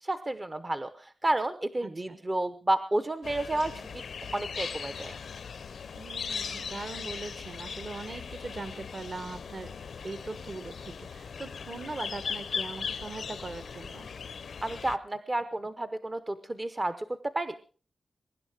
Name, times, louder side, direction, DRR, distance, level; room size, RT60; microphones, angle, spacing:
voice 1, 0.0-4.0 4.3-5.2 14.6-17.5, right 1 dB, 25° right, 11 dB, 0.8 m, -31 dB
voice 2, 1.8-2.2 5.9-9.7 10.0-14.1, right 3 dB, 45° right, 12 dB, 1.5 m, -41 dB
sound 1, 3.2-15.0, left 6 dB, 80° left, 0.6 m, -39 dB
23.0 x 11.0 x 4.8 m, 0.41 s
wide cardioid pair, 155°, 0 cm